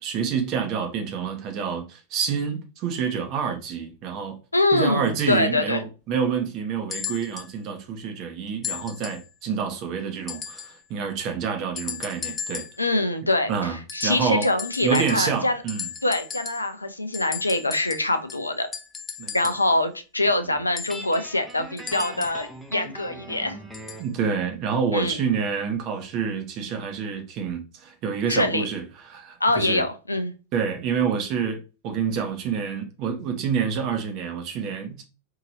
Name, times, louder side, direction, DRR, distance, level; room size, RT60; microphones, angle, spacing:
voice 1, 0.0-4.4 4.7-12.7 13.5-13.8 14.0-14.5 14.8-15.9 19.2-19.5 24.0-29.8 30.5-35.0, right 6 dB, 40° right, 1.0 m, -28 dB
voice 2, 4.5-5.8 12.8-15.6 16.0-18.7 19.3-23.6 24.9-25.2 28.3-28.7 29.4-30.3, left 2 dB, 80° left, 0.5 m, -24 dB
sound 1, 6.9-7.5 8.6-9.3 10.3-10.8 11.8-12.9 13.9-15.4 15.7-16.8 17.1-19.7 20.8-22.5 23.7-24.1 25.0-25.1, left 7 dB, 20° left, 0.4 m, -36 dB
Guitar, 20.9-24.1, right 1 dB, 5° right, 0.8 m, -40 dB
4.6 x 2.9 x 2.6 m
figure-of-eight pair, 90°, 0 cm